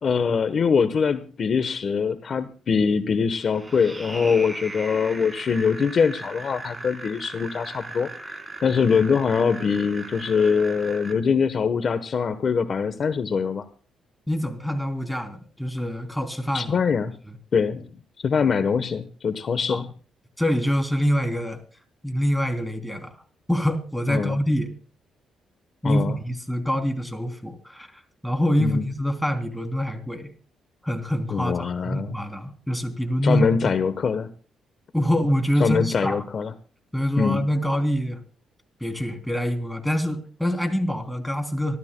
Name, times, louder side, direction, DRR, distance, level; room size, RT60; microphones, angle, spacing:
voice 1, 0.0-13.6 16.5-17.2 17.5-17.9 18.2-19.9 24.1-24.3 25.8-26.2 28.6-28.8 31.3-32.1 33.2-34.3 35.6-36.5 37.2-37.4, left 6 dB, 50° left, 11 dB, 1.0 m, -23 dB
sound 1, 3.4-11.1, right 2 dB, 15° right, 4.0 m, -38 dB
voice 2, 14.3-16.8 17.3-17.4 19.7-19.8 20.4-21.6 22.0-23.1 23.5-24.7 25.8-27.9 28.2-30.3 30.8-33.7 34.9-36.2 36.9-38.2 38.8-41.8, equal, 5° left, 6 dB, 3.2 m, -25 dB
26.0 x 13.5 x 2.2 m, 0.39 s
cardioid pair, 90°, 0 cm